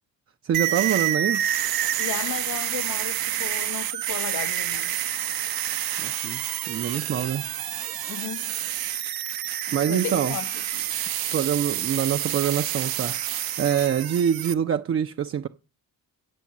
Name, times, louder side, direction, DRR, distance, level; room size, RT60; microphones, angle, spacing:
voice 1, 0.4-1.4 6.0-6.4 6.7-7.4 9.7-10.3 11.3-13.2 13.6-15.5, right 9 dB, 40° right, 0.5 m, -25 dB
sound 1, 0.5-14.5, right 12 dB, 75° right, 0.7 m, -28 dB
voice 2, 2.0-4.9 8.1-8.6 9.7-10.9, left 13 dB, 55° left, 0.5 m, -35 dB
9.3 x 5.6 x 7.2 m
cardioid pair, 130°, 37 cm